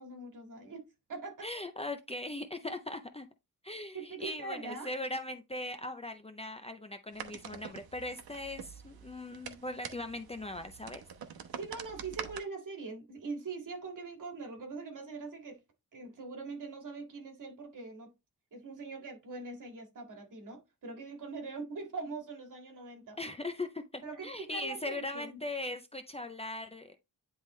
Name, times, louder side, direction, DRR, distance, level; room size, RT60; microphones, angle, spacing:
voice 1, 0.0-1.5 3.9-4.9 11.6-15.6 15.9-18.1 18.5-23.2 24.0-25.4, right 3 dB, 55° right, 2.2 m, -42 dB
voice 2, 1.4-3.3 3.6-11.0 23.2-27.0, left 2 dB, 15° left, 0.5 m, -39 dB
sound 1, 7.1-12.4, right 8 dB, 75° right, 1.0 m, -45 dB
9.8 x 3.5 x 3.2 m
wide cardioid pair, 135°, 37 cm